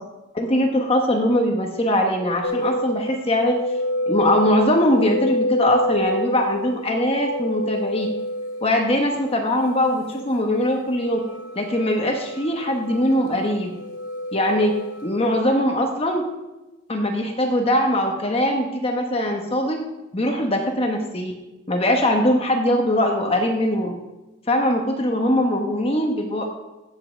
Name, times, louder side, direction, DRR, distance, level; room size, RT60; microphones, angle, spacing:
voice 1, 0.3-3.6 4.1-8.1 8.6-11.2 11.6-13.7 14.3-14.8 15.0-16.2 16.9-19.8 20.1-21.3 21.7-23.9 24.5-26.6, left 1 dB, 25° left, 2 dB, 1.1 m, -21 dB
sound 1, 2.4-15.4, left 1 dB, 75° left, 1.8 m, -29 dB
16.0 x 5.6 x 6.5 m, 1.1 s
head